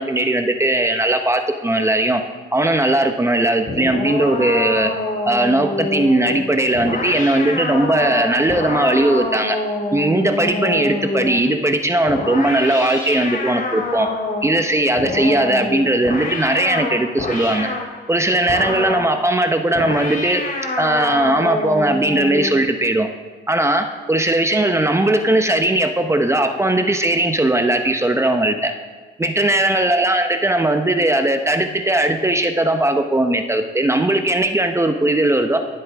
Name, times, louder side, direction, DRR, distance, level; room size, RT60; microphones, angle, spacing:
voice 1, 0.0-2.2 2.5-4.9 5.2-9.6 9.9-14.1 14.4-17.7 18.1-20.4 20.8-23.1 23.5-28.7 29.2-35.6, right 1 dB, 15° right, 6 dB, 0.8 m, -18 dB
sound 1, 3.7-11.5 12.1-14.6 15.0-17.9 18.5-19.1 19.7-22.6, left 2 dB, 45° left, 2.5 m, -26 dB
19.0 x 7.8 x 3.5 m, 1.4 s
cardioid pair, 90°, 20 cm